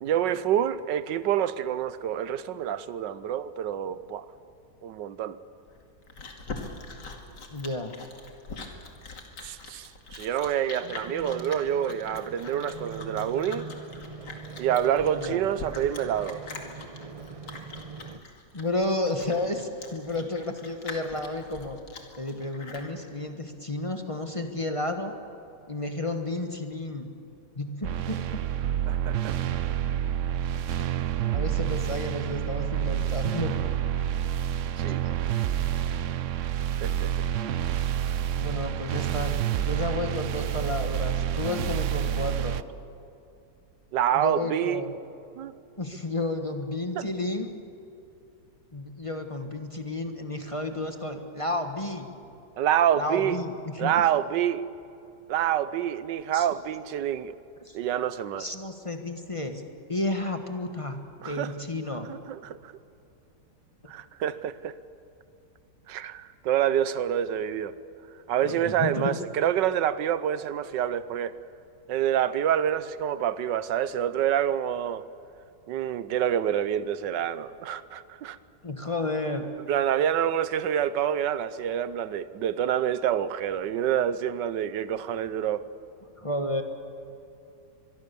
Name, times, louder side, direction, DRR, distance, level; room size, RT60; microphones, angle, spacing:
voice 1, 0.0-4.3 4.8-5.4 9.4-13.7 14.6-16.4 28.9-29.4 34.8-35.0 36.8-37.2 43.9-44.8 45.4-45.5 46.9-47.1 52.6-53.4 53.8-54.7 55.3-57.4 57.7-58.5 61.2-61.5 61.9-62.7 63.9-64.7 65.9-67.8 68.3-71.3 71.9-75.0 75.7-78.4 79.7-85.6, right 10 dB, 85° right, 1.4 m, -27 dB
Chewing mastication, 5.7-22.9, left 3 dB, 75° left, 2.9 m, -43 dB
voice 2, 7.5-7.9 15.2-15.4 18.5-21.8 22.2-25.1 25.7-27.1 27.6-28.4 31.2-33.6 35.0-35.2 38.3-42.6 44.1-44.9 45.8-47.5 48.7-52.1 52.9-54.0 56.3-56.5 57.6-57.8 58.3-62.1 68.4-69.2 78.6-79.4 86.2-86.6, left 2 dB, 20° left, 1.4 m, -32 dB
sound 1, 10.8-18.2, right 4 dB, 35° right, 0.6 m, -43 dB
sound 2, 27.8-42.6, right 11 dB, 60° right, 0.8 m, -28 dB
24.5 x 23.0 x 7.0 m
omnidirectional pair, 1.9 m